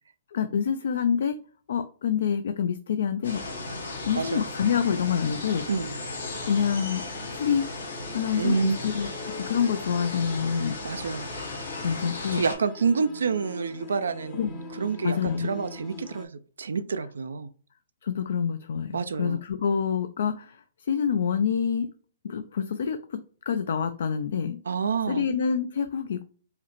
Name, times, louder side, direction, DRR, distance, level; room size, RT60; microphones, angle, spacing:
voice 1, 0.3-1.4 1.7-3.4 4.0-5.6 6.5-7.0 7.3-7.6 8.1-9.1 9.4-11.1 11.8-12.4 14.3-14.5 15.0-15.5 18.0-21.9 22.2-23.2 23.5-24.6 25.1-26.2, left 7 dB, 70° left, 9 dB, 0.3 m, -27 dB
sound 1, 3.2-12.6, left 2 dB, 90° left, 1.6 m, -36 dB
voice 2, 4.1-4.4 5.7-6.0 8.4-8.8 10.8-11.3 12.3-17.5 18.9-19.4 24.7-25.3, right 5 dB, 90° right, 11 dB, 0.3 m, -28 dB
sound 2, 5.5-16.3, left 3 dB, 30° left, 0.7 m, -44 dB
4.8 x 2.1 x 3.0 m, 0.41 s
hypercardioid pair, 145°, 0 cm